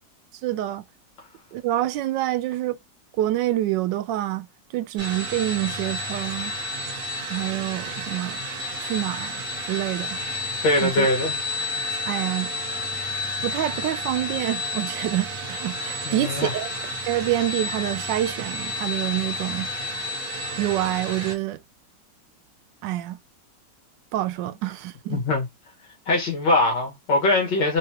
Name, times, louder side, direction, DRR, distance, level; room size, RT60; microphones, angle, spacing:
voice 1, 0.4-0.8 1.5-2.8 3.2-4.5 4.7-6.5 7.3-8.4 8.8-10.2 10.8-11.1 12.1-12.5 13.4-16.7 17.1-19.7 20.6-21.6 22.8-23.2 24.1-25.2, right 14 dB, 85° right, 1.2 m, -27 dB
sound 1, 5.0-21.3, left 1 dB, 55° right, 1.5 m, -31 dB
voice 2, 10.6-11.4 16.0-16.5 25.1-25.5 26.1-27.8, left 2 dB, 85° left, 2.5 m, -22 dB
4.7 x 2.3 x 2.9 m
omnidirectional pair, 1.9 m